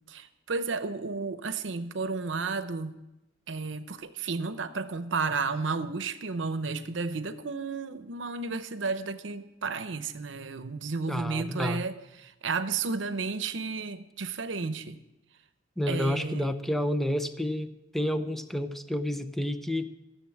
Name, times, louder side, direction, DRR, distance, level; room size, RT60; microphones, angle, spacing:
voice 1, 0.1-2.9 3.5-15.0 15.9-16.5, right 4 dB, 85° right, 12 dB, 0.8 m, -32 dB
voice 2, 11.1-11.8 15.8-19.9, left 1 dB, ahead, 9 dB, 0.6 m, -30 dB
14.0 x 7.1 x 7.1 m, 0.95 s
head